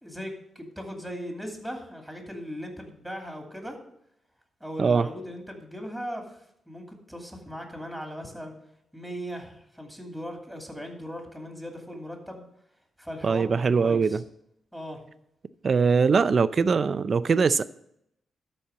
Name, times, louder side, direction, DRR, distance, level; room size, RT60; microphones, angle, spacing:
voice 1, 0.0-3.8 4.6-6.4 6.7-8.5 8.9-12.4 13.0-14.2 14.7-15.0, equal, 5° left, 2 dB, 2.5 m, -38 dB
voice 2, 13.2-14.2 15.6-17.6, right 5 dB, 50° right, 14 dB, 0.5 m, -22 dB
12.5 x 4.4 x 7.5 m, 0.77 s
cardioid pair, 85°, 0 cm